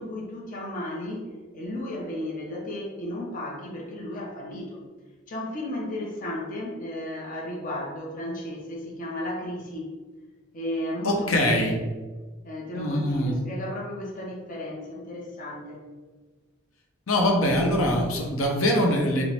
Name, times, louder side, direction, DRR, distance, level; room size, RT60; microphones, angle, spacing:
voice 1, 0.0-4.8 5.3-9.9 10.5-11.5 12.4-15.8, left 1 dB, 40° left, -2 dB, 0.7 m, -34 dB
voice 2, 11.0-11.8 12.7-13.4 17.1-19.2, left 1 dB, 80° left, 1 dB, 0.8 m, -23 dB
4.9 x 2.1 x 3.4 m, 1.3 s
head